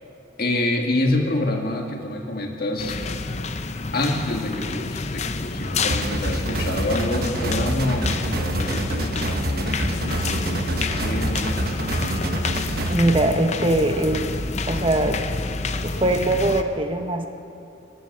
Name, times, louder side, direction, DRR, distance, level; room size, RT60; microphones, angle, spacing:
voice 1, 0.4-3.0 3.9-11.8, left 1 dB, 55° left, 2 dB, 1.8 m, -27 dB
sound 1, 2.8-16.6, left 3 dB, 40° left, 0.6 m, -29 dB
sound 2, 5.9-12.9, right 1 dB, 55° right, 1.1 m, -26 dB
voice 2, 12.9-14.3 14.7-15.2 15.8-17.3, right 1 dB, 30° right, 6 dB, 0.8 m, -21 dB
18.5 x 11.0 x 6.7 m, 2.8 s
head